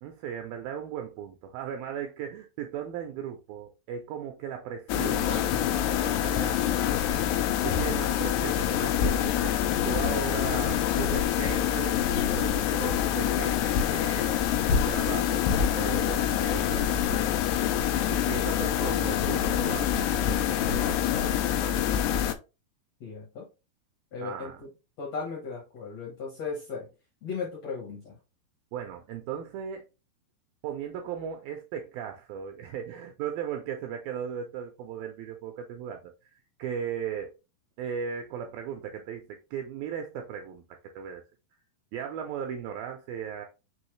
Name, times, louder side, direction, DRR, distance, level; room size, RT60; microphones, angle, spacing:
voice 1, 0.0-7.3 7.6-14.4 14.7-15.5 15.7-17.3 18.1-21.9 24.2-24.6 28.7-29.9 30.6-36.3 36.6-37.3 37.8-41.2 41.9-43.5, right 8 dB, 80° right, 2.1 m, -37 dB
sound 1, 4.9-22.3, left 10 dB, 85° left, 2.6 m, -26 dB
voice 2, 23.0-23.5 24.1-24.7 25.0-26.9 27.2-28.2, left 5 dB, 65° left, 1.6 m, -36 dB
6.2 x 2.7 x 3.1 m
omnidirectional pair, 4.7 m